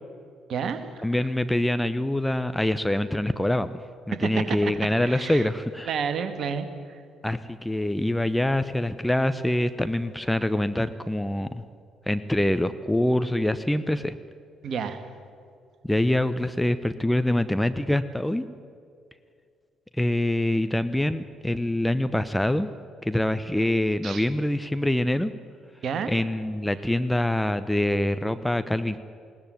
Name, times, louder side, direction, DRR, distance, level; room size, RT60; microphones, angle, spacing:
voice 1, 0.5-1.1 4.1-4.7 5.0-5.5 5.9-7.0 14.6-15.1 24.0-24.3 25.8-26.1, right 6 dB, 50° right, 9 dB, 1.9 m, -30 dB
voice 2, 1.0-3.8 4.1-5.9 7.2-11.6 12.1-14.2 15.8-18.5 20.0-25.3 26.1-29.0, left 1 dB, 5° left, 11 dB, 0.9 m, -25 dB
20.5 x 17.5 x 9.4 m, 2.3 s
figure-of-eight pair, 45°, 0 cm